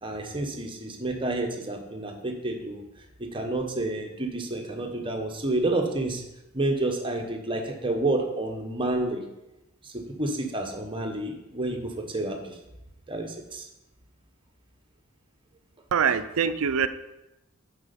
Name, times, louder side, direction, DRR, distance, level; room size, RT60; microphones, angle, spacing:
voice 1, 0.0-2.8 3.2-6.2 6.5-9.2 9.9-12.5 13.1-13.7, right 2 dB, 25° right, 3 dB, 1.0 m, -29 dB
voice 2, 15.9-16.9, right 7 dB, 70° right, 12 dB, 0.5 m, -24 dB
8.2 x 4.9 x 5.2 m, 0.93 s
head